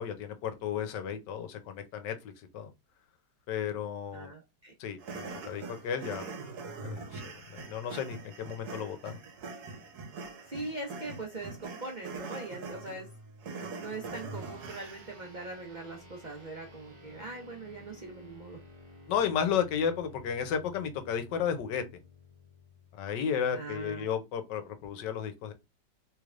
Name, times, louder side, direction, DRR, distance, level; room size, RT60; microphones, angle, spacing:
voice 1, 0.0-2.7 3.5-4.3 4.8-6.2 6.8-9.1 19.1-21.8 22.9-25.5, left 8 dB, 75° left, 1.3 m, -33 dB
voice 2, 4.1-4.7 10.5-13.1 13.8-18.6 23.5-24.1, right 2 dB, 90° right, 0.4 m, -41 dB
sound 1, 5.0-15.2, right 4 dB, 65° right, 1.3 m, -43 dB
sound 2, 14.3-24.0, left 2 dB, 50° right, 1.5 m, -54 dB
3.3 x 3.2 x 2.4 m
omnidirectional pair, 1.9 m